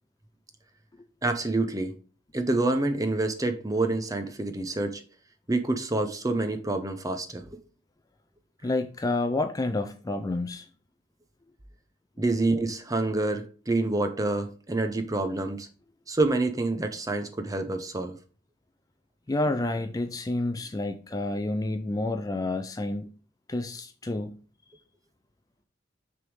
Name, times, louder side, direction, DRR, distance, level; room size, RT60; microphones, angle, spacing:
voice 1, 1.2-1.9 2.3-5.0 5.5-7.6 12.2-15.7 16.1-18.2, right 2 dB, 20° right, 0.7 m, -27 dB
voice 2, 8.6-10.7 19.3-23.2 23.5-24.4, left 2 dB, 20° left, 0.4 m, -29 dB
6.5 x 3.5 x 4.7 m
head